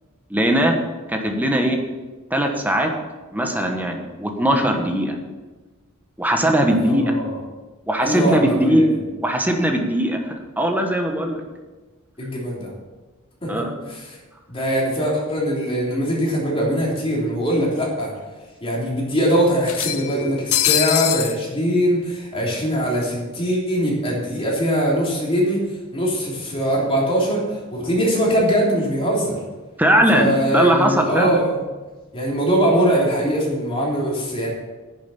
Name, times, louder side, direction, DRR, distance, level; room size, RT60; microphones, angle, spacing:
voice 1, 0.3-0.8 1.1-1.8 2.3-2.9 3.3-5.1 6.2-7.1 7.9-8.9 9.2-10.2 10.6-11.4 13.5-13.7 29.8-31.4, right 1 dB, 10° right, 3 dB, 1.3 m, -19 dB
voice 2, 6.7-7.4 8.0-8.9 12.2-12.7 13.4-13.5 13.9-14.1 14.5-18.1 18.6-25.6 25.9-29.4 30.1-31.6 32.1-34.5, equal, 25° left, -4 dB, 3.4 m, -21 dB
sound 1, 16.2-16.3 16.6-16.7 17.8-17.9 18.2-18.3 19.6-21.4, left 12 dB, 75° left, 0.7 m, -23 dB
9.9 x 7.2 x 7.0 m, 1.2 s
head